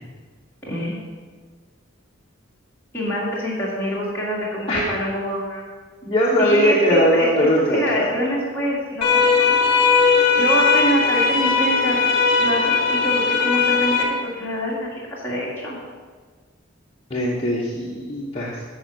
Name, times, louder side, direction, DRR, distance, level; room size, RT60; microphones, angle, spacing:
voice 1, 0.6-1.0 2.9-5.6 6.4-9.7 10.4-12.0 12.4-14.1 14.4-15.8, equal, 10° left, -8 dB, 1.9 m, -25 dB
voice 2, 6.1-8.1 17.1-18.5, equal, 30° left, -5 dB, 1.0 m, -19 dB
sound 1, 9.0-14.0, left 5 dB, 45° left, 1.6 m, -18 dB
9.5 x 4.6 x 6.3 m, 1.5 s
head